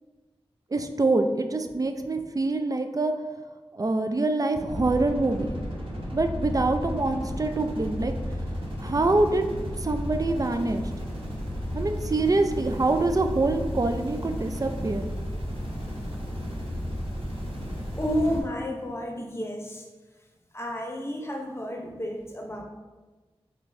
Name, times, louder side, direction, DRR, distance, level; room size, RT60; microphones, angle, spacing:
voice 1, 0.7-3.1 3.7-5.5 6.1-8.1 8.8-9.4 9.8-10.9 11.7-15.1, right 2 dB, 35° right, 7 dB, 0.4 m, -25 dB
sound 1, 4.7-18.4, equal, 60° right, 1.1 m, -33 dB
voice 2, 18.0-19.9 20.5-22.6, equal, 25° left, 1 dB, 0.8 m, -31 dB
3.8 x 3.5 x 3.2 m, 1.2 s
wide cardioid pair, 65°, 10 cm